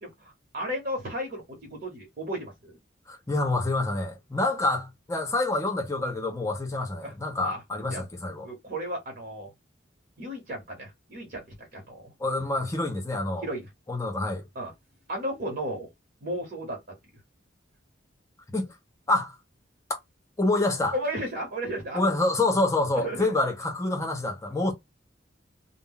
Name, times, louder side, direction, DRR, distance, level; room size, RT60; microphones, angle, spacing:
voice 1, 0.0-2.8 7.0-7.1 7.4-7.6 7.9-8.0 8.4-9.5 10.2-12.1 13.4-13.6 14.5-14.7 15.1-15.9 16.2-16.9 20.9-22.0 22.9-23.3, right 1 dB, 50° right, 1.0 m, -34 dB
voice 2, 3.1-8.5 12.2-13.5 13.9-14.5 18.5-18.7 19.1-19.4 19.9-20.0 20.4-21.0 21.9-24.7, left 2 dB, 15° left, 0.6 m, -27 dB
2.2 x 2.0 x 3.6 m
head